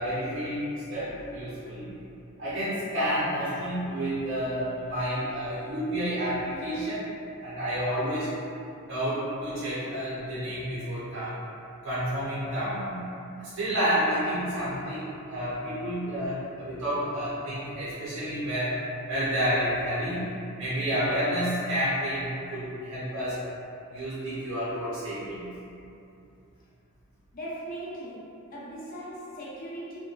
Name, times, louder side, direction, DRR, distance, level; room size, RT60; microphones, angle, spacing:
voice 1, 0.0-2.0 2.4-7.0 7.4-8.3 8.9-11.3 11.8-13.0 13.4-18.8 19.1-20.2 20.6-23.4 23.9-25.4, equal, 60° right, -10 dB, 0.6 m, -30 dB
voice 2, 27.3-30.0, right 1 dB, 40° left, -8 dB, 0.6 m, -39 dB
2.8 x 2.2 x 2.3 m, 2.7 s
head